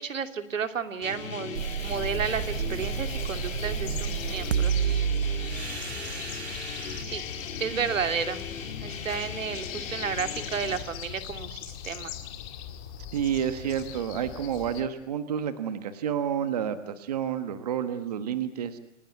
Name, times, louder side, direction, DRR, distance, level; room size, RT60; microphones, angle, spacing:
voice 1, 0.0-5.5 7.0-7.2 7.6-8.4 8.8-12.1, right 6 dB, 75° right, 8 dB, 2.9 m, -32 dB
sound 1, 1.0-10.8, left 6 dB, 80° left, 3.6 m, -39 dB
sound 2, 1.5-7.0, right 9 dB, 55° right, 1.0 m, -30 dB
sound 3, 1.9-14.8, left 8 dB, 15° left, 1.8 m, -40 dB
voice 2, 13.1-18.8, right 9 dB, 30° right, 10 dB, 1.2 m, -30 dB
28.5 x 19.5 x 9.4 m, 0.80 s
hypercardioid pair, 175°, 39 cm